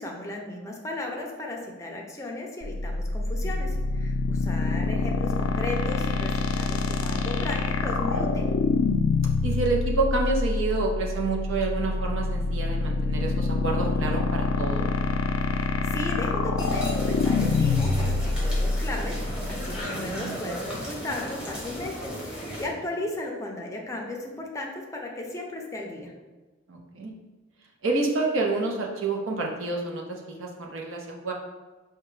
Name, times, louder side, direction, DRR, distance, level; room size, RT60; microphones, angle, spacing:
voice 1, 0.0-8.5 15.5-26.1, left 2 dB, 15° left, 0 dB, 0.5 m, -35 dB
sound 1, 2.6-19.8, left 4 dB, 85° left, 0.3 m, -26 dB
voice 2, 9.4-14.9 19.8-20.3 26.7-27.1 27.8-30.0 30.4-31.3, right 3 dB, 75° right, -1 dB, 0.6 m, -28 dB
sound 2, 16.6-22.7, equal, 5° right, 0.9 m, -36 dB
4.8 x 2.2 x 3.1 m, 1.2 s
head